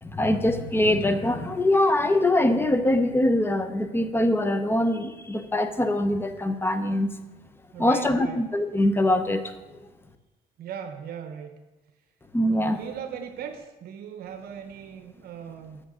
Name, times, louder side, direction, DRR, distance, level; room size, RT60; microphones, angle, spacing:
voice 1, 0.0-7.1 7.8-9.4 12.3-12.8, left 1 dB, 15° left, 9 dB, 0.7 m, -23 dB
voice 2, 7.7-8.4 10.6-11.5 12.6-15.8, right 8 dB, 65° right, 6 dB, 0.8 m, -38 dB
6.6 x 6.2 x 6.2 m, 1.1 s
cardioid pair, 110°, 17 cm